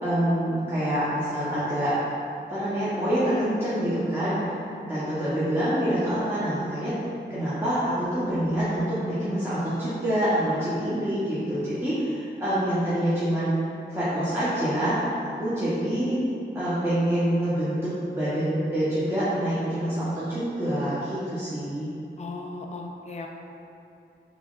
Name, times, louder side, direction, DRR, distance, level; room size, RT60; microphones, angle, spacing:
voice 1, 0.0-1.9 2.5-4.4 4.8-6.9 7.3-13.5 13.9-16.2 16.5-21.9, equal, 10° right, -13 dB, 0.9 m, -26 dB
voice 2, 22.2-23.3, left 3 dB, 35° left, 2 dB, 0.4 m, -36 dB
3.3 x 3.0 x 2.4 m, 2.6 s
cardioid pair, 50°, 19 cm